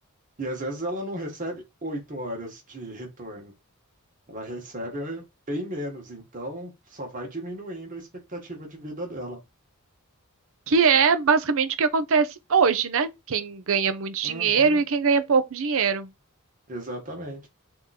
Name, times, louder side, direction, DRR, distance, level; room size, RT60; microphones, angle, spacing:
voice 1, 0.4-3.5 4.3-9.4 14.2-14.8 16.7-17.5, right 1 dB, 35° right, 1.4 m, -35 dB
voice 2, 10.7-16.1, right 5 dB, 65° right, 0.6 m, -22 dB
3.7 x 2.9 x 4.0 m
head